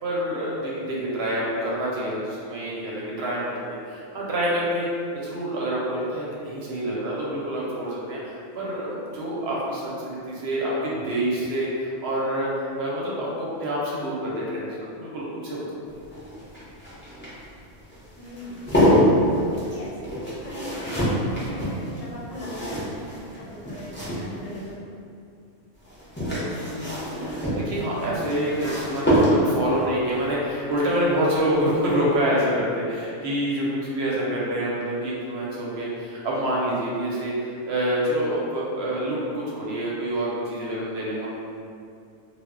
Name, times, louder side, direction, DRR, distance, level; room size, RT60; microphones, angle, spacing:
voice 1, 0.0-4.9 5.1-15.7 26.3-41.3, right 1 dB, 65° right, -5 dB, 0.8 m, -27 dB
sound 1, 15.9-24.7 25.8-29.8 31.4-31.7 32.0-32.1, equal, 15° left, 0.4 m, -26 dB
voice 2, 18.2-18.7 19.4-24.9, left 1 dB, 90° left, -4 dB, 1.0 m, -39 dB
2.1 x 2.1 x 3.6 m, 2.4 s
omnidirectional pair, 1.3 m